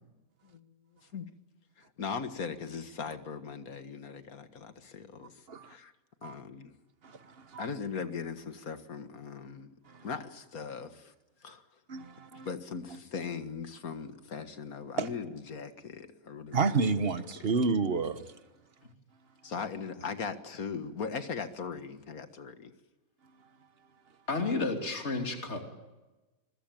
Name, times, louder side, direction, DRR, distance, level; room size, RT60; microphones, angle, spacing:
voice 1, 0.4-0.7 1.1-1.3 1.8-5.9 6.2-6.7 7.6-9.7 10.0-11.1 11.4-11.8 12.4-16.8 17.4-17.5 19.4-22.7, left 5 dB, 80° left, 2.1 m, -39 dB
voice 2, 7.0-7.7 9.9-10.1 11.9-12.5 15.0-15.1 16.5-18.3, right 4 dB, 45° right, 1.5 m, -30 dB
voice 3, 24.3-25.6, left 3 dB, 50° left, 3.2 m, -31 dB
26.0 x 22.0 x 9.1 m
omnidirectional pair, 1.5 m